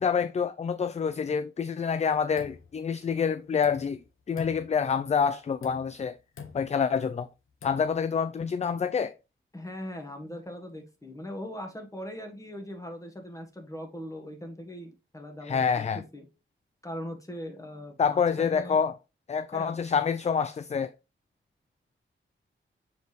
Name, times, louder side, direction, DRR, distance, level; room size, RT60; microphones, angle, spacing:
voice 1, 0.0-4.0 4.3-6.2 6.5-7.3 7.6-9.1 15.4-16.0 18.0-19.0 19.3-20.9, left 6 dB, 35° left, 0.3 m, -27 dB
sound 1, 1.9-3.1 3.5-4.1 4.3-5.1 5.5-6.1 6.3-6.9 7.5-8.0, left 6 dB, 75° left, 1.0 m, -46 dB
voice 2, 9.5-16.2 16.8-18.8 19.5-19.8, equal, 15° left, 1.6 m, -40 dB
7.3 x 3.9 x 3.3 m
wide cardioid pair, 100°, 21 cm